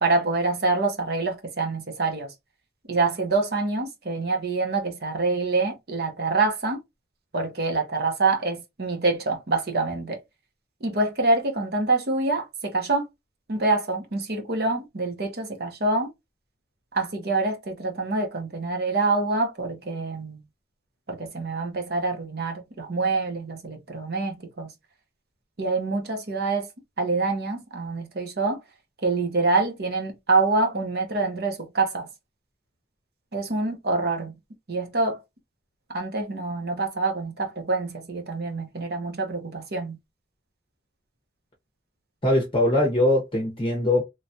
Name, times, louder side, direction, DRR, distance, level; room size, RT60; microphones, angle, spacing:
voice 1, 0.0-2.3 2.9-6.8 7.3-10.2 10.8-13.1 13.5-16.1 16.9-20.4 21.1-24.7 25.6-26.7 27.0-28.6 29.0-32.1 33.3-34.3 34.7-35.2 35.9-40.0, right 3 dB, 55° right, 0.8 m, -26 dB
voice 2, 42.2-44.0, left 1 dB, 25° left, 0.7 m, -21 dB
3.2 x 2.3 x 2.6 m
head